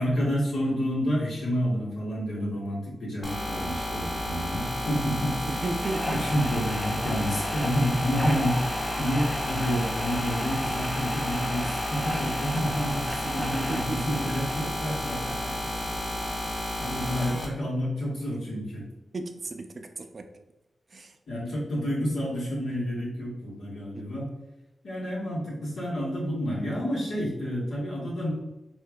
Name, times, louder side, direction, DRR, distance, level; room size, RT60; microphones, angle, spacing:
voice 1, 0.0-5.4 6.1-15.5 16.8-18.8 21.3-24.3 24.8-28.3, equal, 75° left, -5 dB, 1.3 m, -29 dB
sound 1, 3.2-17.4, left 1 dB, 45° left, 1.3 m, -32 dB
voice 2, 5.5-6.3 13.2-14.4 19.1-20.3 20.9-21.2 23.9-24.1, right 3 dB, 50° right, 6 dB, 0.4 m, -35 dB
sound 2, 5.8-14.7, equal, 15° left, 0.5 m, -35 dB
4.6 x 2.4 x 2.3 m, 0.99 s
cardioid pair, 60°, 0 cm